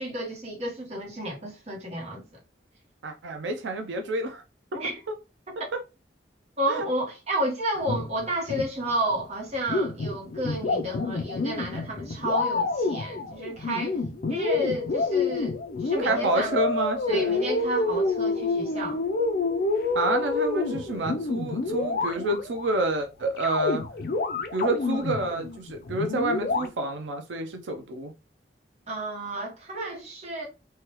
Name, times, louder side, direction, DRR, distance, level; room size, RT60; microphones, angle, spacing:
voice 1, 0.0-2.4 4.7-5.0 5.5-5.7 6.6-14.0 14.3-16.5 17.1-19.0 28.9-30.5, right 1 dB, 35° right, 0.9 m, -31 dB
voice 2, 3.0-4.4 5.7-5.8 6.7-6.9 16.0-17.3 19.9-23.8 24.5-28.1, right 2 dB, 85° right, 0.5 m, -28 dB
sound 1, 7.8-9.2 9.5-22.7 23.4-26.7, left 3 dB, 55° left, 0.4 m, -28 dB
3.2 x 2.2 x 2.9 m
head